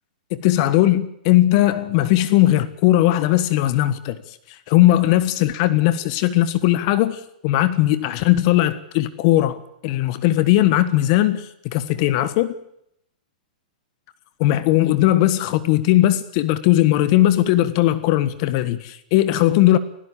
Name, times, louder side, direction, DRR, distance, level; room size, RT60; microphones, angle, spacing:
voice 1, 0.3-4.2 4.5-12.5 14.4-19.8, left 14 dB, 45° left, 1.4 m, -18 dB
19.0 x 17.0 x 8.7 m
hypercardioid pair, 130°, 5 cm